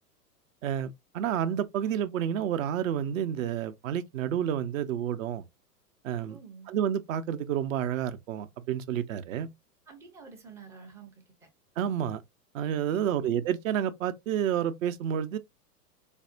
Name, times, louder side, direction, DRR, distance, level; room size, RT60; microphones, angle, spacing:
voice 1, 0.6-5.4 6.0-6.4 6.7-9.5 11.8-12.2 12.5-15.4, right 9 dB, 55° right, 0.7 m, -30 dB
voice 2, 6.3-6.7 9.9-11.5 12.9-13.4, right 5 dB, 5° right, 0.4 m, -49 dB
4.2 x 2.6 x 2.4 m
hypercardioid pair, 110°, 47 cm